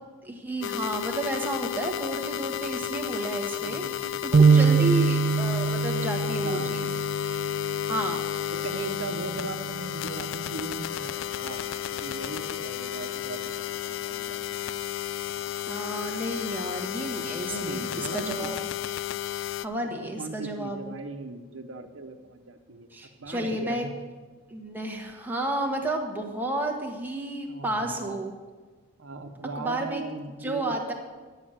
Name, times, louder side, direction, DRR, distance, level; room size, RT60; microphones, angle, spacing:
voice 1, 0.2-6.9 7.9-8.3 15.7-18.6 19.6-20.9 22.9-23.9 24.5-28.3 29.6-30.0 30.4-30.9, right 1 dB, 10° right, 0 dB, 1.3 m, -31 dB
sound 1, 0.6-19.7, left 11 dB, 70° left, 0.3 m, -32 dB
voice 2, 3.6-4.2 4.5-4.9 6.4-7.0 8.5-11.6 11.9-13.5 13.8-14.4 17.5-18.6 19.8-22.9 23.2-23.9 27.5-28.2 29.0-30.9, right 3 dB, 85° right, 7 dB, 0.9 m, -38 dB
sound 2, 4.3-10.6, right 5 dB, 40° right, 0.3 m, -25 dB
10.5 x 5.7 x 8.8 m, 1.4 s
head